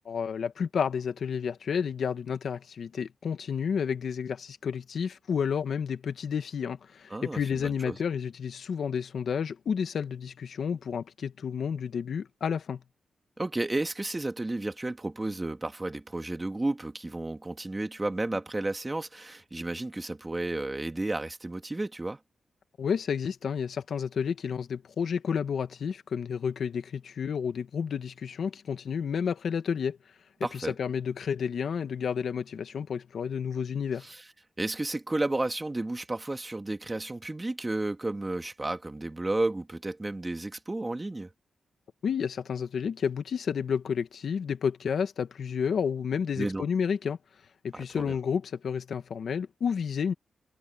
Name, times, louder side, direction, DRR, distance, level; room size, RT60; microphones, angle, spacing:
voice 1, 0.0-12.8 22.8-30.0 30.5-34.1 42.0-47.2 47.6-50.1, left 7 dB, 70° left, 1.3 m, -31 dB
voice 2, 7.1-8.0 13.4-22.2 30.4-30.7 34.0-34.2 34.6-41.3 46.4-46.6 47.7-48.1, right 2 dB, 20° right, 2.1 m, -32 dB
wide cardioid pair, 125°, 0 cm